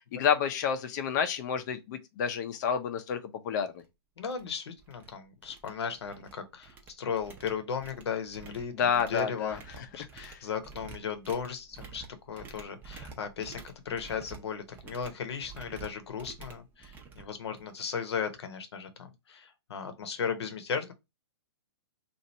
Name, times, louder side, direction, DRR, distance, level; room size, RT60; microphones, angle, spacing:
voice 1, 0.1-3.2 3.4-3.7 8.7-9.6 10.2-10.4, left 7 dB, 45° left, 0.6 m, -29 dB
sound 1, 3.7-3.8 4.3-4.5 4.8-5.1 5.4-6.3 6.6-17.9, right 5 dB, 15° right, 0.6 m, -49 dB
voice 2, 4.2-20.9, left 6 dB, 75° left, 0.9 m, -36 dB
2.8 x 2.5 x 4.2 m
hypercardioid pair, 145°, 14 cm